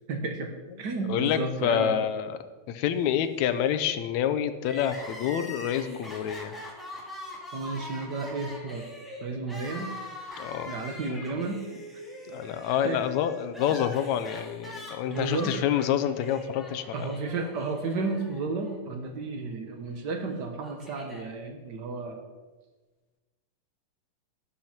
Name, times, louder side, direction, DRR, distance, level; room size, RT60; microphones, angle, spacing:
voice 1, 0.1-0.5 0.8-2.0 7.5-8.8 9.2-9.9 10.7-11.7 12.6-13.0 15.1-15.6 16.9-22.2, right 3 dB, 80° right, 4 dB, 0.9 m, -32 dB
voice 2, 1.1-2.4 2.7-6.5 10.4-10.7 12.3-17.1, left 9 dB, 75° left, 10 dB, 1.8 m, -27 dB
Crying sobbing, 4.6-18.7 19.0-19.1 20.1-21.2, left 1 dB, ahead, 2.7 m, -43 dB
12.0 x 12.0 x 4.4 m, 1.2 s
omnidirectional pair, 3.8 m